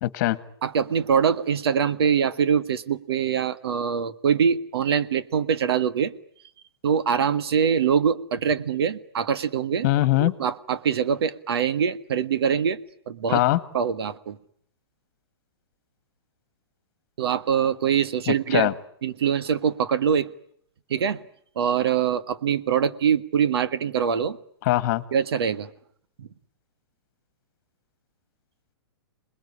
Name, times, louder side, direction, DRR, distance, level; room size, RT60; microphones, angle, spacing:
voice 1, 0.0-0.4 9.8-10.3 13.3-13.6 18.3-18.7 24.6-25.0, left 16 dB, 40° left, 1.8 m, -21 dB
voice 2, 0.6-6.1 6.8-9.9 10.2-12.8 13.1-13.4 13.7-14.4 17.2-18.7 19.0-20.3 20.9-21.2 21.6-24.4 25.1-25.7 26.2-26.3, right 7 dB, 75° right, 1.7 m, -23 dB
28.0 x 21.0 x 10.0 m
hypercardioid pair, 145°, 13 cm